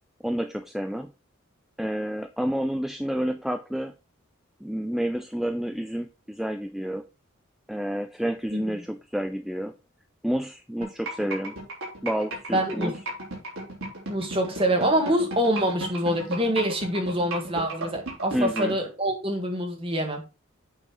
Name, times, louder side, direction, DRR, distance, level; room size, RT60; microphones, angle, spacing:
voice 1, 0.2-1.1 1.8-3.9 4.6-7.0 7.7-9.7 10.2-11.6 12.0-13.0 18.3-18.8, equal, ahead, 0.3 m, -29 dB
sound 1, 10.8-18.7, right 1 dB, 85° right, 3.9 m, -33 dB
voice 2, 12.5-13.0 14.1-20.3, equal, 25° right, 1.6 m, -25 dB
8.8 x 4.1 x 4.4 m
head